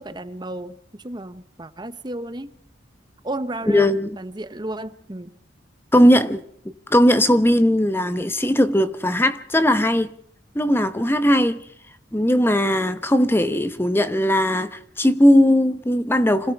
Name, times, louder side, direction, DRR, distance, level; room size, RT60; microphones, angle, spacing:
voice 1, 0.0-2.5 3.2-5.3, right 1 dB, 25° right, 1.0 m, -33 dB
voice 2, 3.7-4.1 5.9-6.4 6.9-10.1 10.5-11.6 12.1-16.5, equal, 10° left, 1.0 m, -18 dB
26.5 x 17.0 x 5.9 m
head